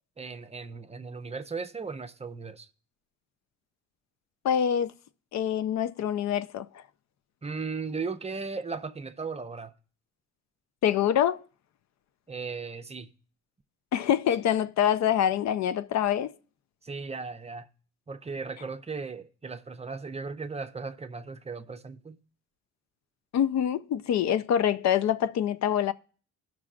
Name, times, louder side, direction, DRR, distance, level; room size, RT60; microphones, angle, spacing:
voice 1, 0.2-2.7 7.4-9.7 12.3-13.1 16.8-17.7 18.1-22.2, right 4 dB, 20° right, 0.6 m, -36 dB
voice 2, 4.4-4.9 5.3-6.8 10.8-11.4 13.9-16.3 23.3-25.9, left 9 dB, 65° left, 0.5 m, -25 dB
18.0 x 6.1 x 2.5 m
cardioid pair, 90°, 30 cm